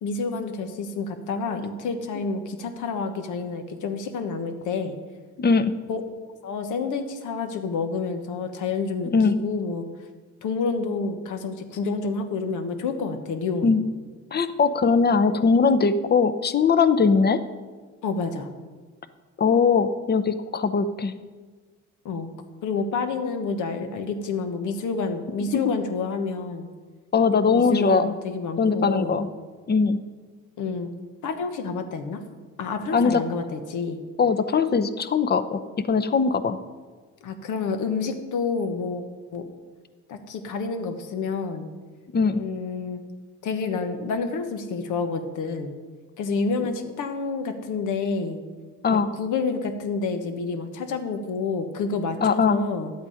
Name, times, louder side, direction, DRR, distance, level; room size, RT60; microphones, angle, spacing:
voice 1, 0.0-4.9 5.9-6.0 6.4-9.9 10.4-13.8 18.0-18.5 22.0-22.3 22.6-26.7 27.5-29.2 30.6-30.9 31.2-32.2 32.6-34.0 37.2-39.0 39.3-39.5 40.1-41.7 42.4-43.0 43.4-45.7 46.2-48.4 48.9-52.9, left 4 dB, 80° left, 6 dB, 1.2 m, -29 dB
voice 2, 5.4-5.7 9.1-9.3 13.6-13.8 14.3-17.4 19.4-21.1 27.1-28.2 28.6-29.3 29.7-30.0 32.9-33.2 34.2-35.6 35.9-36.6 42.1-42.4 48.8-49.1 52.2-52.6, left 5 dB, 35° left, 11 dB, 0.7 m, -20 dB
10.5 x 8.1 x 5.0 m, 1.4 s
cardioid pair, 90°, 30 cm